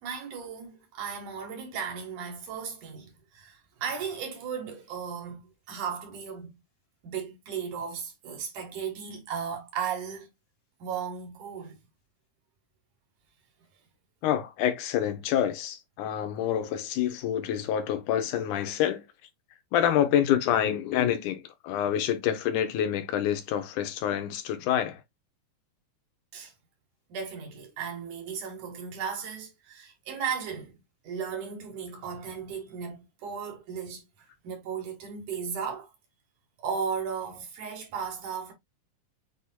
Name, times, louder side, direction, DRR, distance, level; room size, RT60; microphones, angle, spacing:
voice 1, 0.0-6.5 7.0-10.3 10.8-11.8 26.3-26.5 27.1-30.8 31.0-35.9 36.6-38.5, right 6 dB, 85° right, 3.1 m, -36 dB
voice 2, 14.2-19.1 19.7-25.0, left 10 dB, 90° left, 2.4 m, -27 dB
8.0 x 2.8 x 2.2 m
omnidirectional pair, 3.4 m